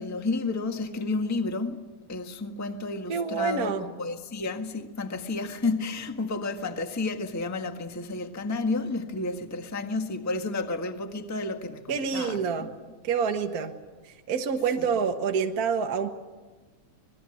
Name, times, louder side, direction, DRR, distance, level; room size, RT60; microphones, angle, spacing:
voice 1, 0.0-1.8 2.1-12.7 14.8-14.9, left 3 dB, 15° left, 0.5 m, -31 dB
voice 2, 3.1-3.9 11.9-12.7 13.0-13.7 14.3-16.1, right 6 dB, 50° right, 1.1 m, -27 dB
26.5 x 20.5 x 9.7 m
omnidirectional pair, 3.4 m